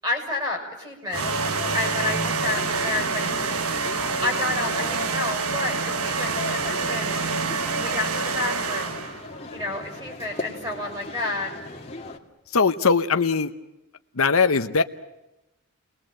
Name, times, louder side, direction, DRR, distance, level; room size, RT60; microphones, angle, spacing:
voice 1, 0.0-1.3 1.7-3.2 4.2-7.3 7.8-9.0 9.5-11.5, left 2 dB, 20° right, 3 dB, 6.6 m, -30 dB
sound 1, 1.1-12.2, left 2 dB, 25° left, 2.1 m, -37 dB
sound 2, 1.1-9.2, right 4 dB, 70° right, 1.3 m, -27 dB
voice 2, 12.5-13.5 14.2-14.8, left 5 dB, 65° left, 9 dB, 0.9 m, -20 dB
30.0 x 21.0 x 7.7 m, 0.97 s
head